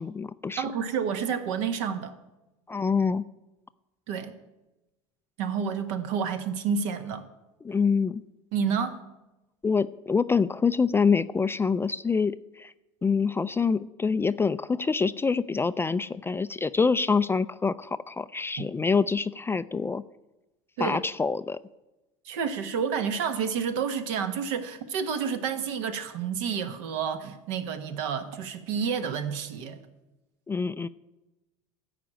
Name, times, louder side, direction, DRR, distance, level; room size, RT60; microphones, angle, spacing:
voice 1, 0.0-0.6 2.7-3.2 7.6-8.2 9.6-12.7 13.0-20.0 20.8-21.6 30.5-30.9, left 5 dB, 15° left, 0.3 m, -26 dB
voice 2, 0.6-2.1 4.1-4.3 5.4-7.2 8.5-9.0 18.6-18.7 20.8-21.0 22.2-29.8, right 6 dB, 65° right, 1.3 m, -29 dB
14.0 x 5.1 x 8.9 m
hypercardioid pair, 80°, 17 cm